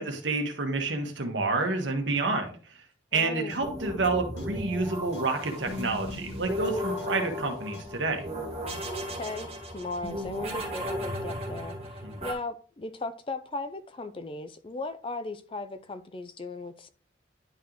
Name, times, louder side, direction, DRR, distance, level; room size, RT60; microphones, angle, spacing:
voice 1, 0.0-2.8 3.1-8.2 12.0-12.2, right 3 dB, 75° right, 1.4 m, -29 dB
voice 2, 3.1-3.5 8.9-16.9, left 2 dB, 25° left, 0.4 m, -37 dB
sound 1, 3.2-3.3 3.5-3.6 4.0-4.1 4.4-4.5 5.1-5.2 5.8-5.9 6.1-6.2 6.6-6.7 7.0-7.1 7.7-7.8 8.7-8.8, left 4 dB, 60° left, 1.4 m, -46 dB
sound 2, 3.6-12.3, left 1 dB, 30° right, 1.4 m, -35 dB
10.5 x 3.9 x 3.0 m
head